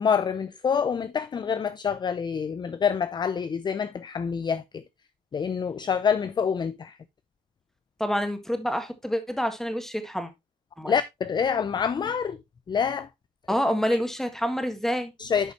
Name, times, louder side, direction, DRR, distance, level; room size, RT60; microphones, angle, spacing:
voice 1, 0.0-4.8 5.3-7.0 10.9-12.4 12.7-13.1 13.9-14.0 15.2-15.5, left 6 dB, 25° left, 0.5 m, -26 dB
voice 2, 8.0-10.3 10.8-10.9 13.5-15.1, equal, ahead, 1.7 m, -27 dB
11.0 x 5.5 x 3.0 m
cardioid pair, 110°, 17 cm